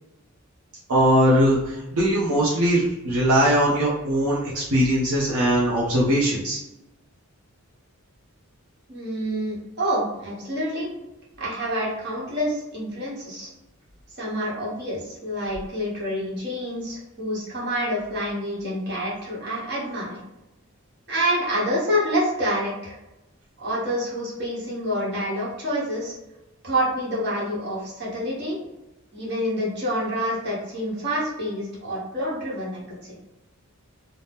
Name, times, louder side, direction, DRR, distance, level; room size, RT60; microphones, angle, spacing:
voice 1, 0.9-6.6, equal, 75° right, -6 dB, 0.6 m, -20 dB
voice 2, 8.9-10.9 11.4-13.5 14.1-20.2 21.1-23.0 23.6-26.1 26.6-28.6 29.1-33.1, equal, 50° right, -5 dB, 1.0 m, -27 dB
2.7 x 2.1 x 3.4 m, 0.96 s
head